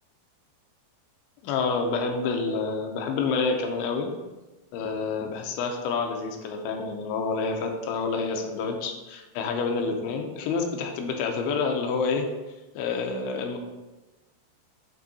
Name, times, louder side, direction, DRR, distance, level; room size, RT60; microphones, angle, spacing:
voice 1, 1.4-4.1 4.7-12.3 12.8-13.6, left 4 dB, 80° left, 3 dB, 2.9 m, -28 dB
8.6 x 3.7 x 4.1 m, 1.1 s
omnidirectional pair, 5.3 m